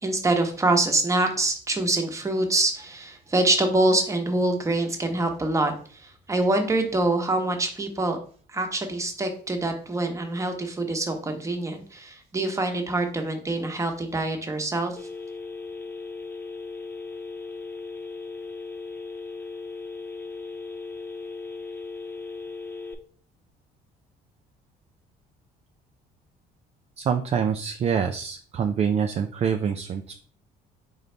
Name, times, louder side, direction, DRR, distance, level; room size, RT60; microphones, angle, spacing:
voice 1, 0.0-8.2 8.5-14.9, right 2 dB, 15° right, 4 dB, 1.0 m, -25 dB
Telephone, 15.0-22.9, left 3 dB, 10° left, 0.6 m, -37 dB
voice 2, 27.0-30.1, right 7 dB, 40° right, 6 dB, 0.4 m, -25 dB
4.0 x 3.9 x 3.3 m, 0.43 s
cardioid pair, 110°, 17 cm